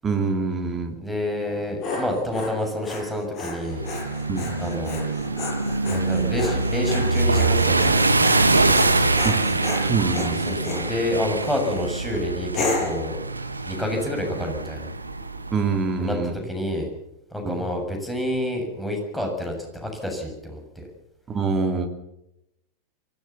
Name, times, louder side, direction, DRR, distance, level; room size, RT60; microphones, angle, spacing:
voice 1, 0.0-1.0 4.3-4.5 9.2-9.4 9.8-10.4 15.5-16.3 17.4-17.6 21.3-21.9, right 4 dB, 20° right, 4 dB, 3.0 m, -25 dB
voice 2, 1.0-3.9 4.6-5.0 5.8-8.0 10.4-14.9 16.0-16.2 16.4-16.9 17.3-20.9, left 1 dB, 5° left, 2 dB, 7.3 m, -28 dB
Dog, 1.4-10.9 11.4-11.8 12.5-13.0, left 3 dB, 35° left, 6.6 m, -33 dB
sound 1, 3.7-15.8, right 3 dB, 80° right, 1.6 m, -24 dB
24.0 x 17.0 x 7.2 m, 0.85 s
figure-of-eight pair, 90°, 0 cm